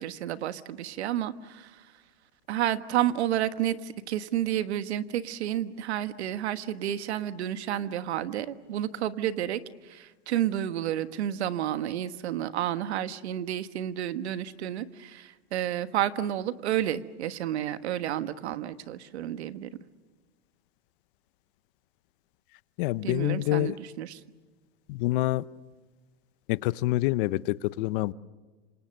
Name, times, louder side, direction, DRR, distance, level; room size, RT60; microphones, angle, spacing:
voice 1, 0.0-1.9 2.5-19.7 23.0-24.2, right 11 dB, 75° right, 12 dB, 1.4 m, -31 dB
voice 2, 22.8-23.8 24.9-25.4 26.5-28.1, left 18 dB, 50° left, 18 dB, 0.8 m, -27 dB
27.5 x 26.5 x 6.6 m, 1.3 s
supercardioid pair, 135°, 33 cm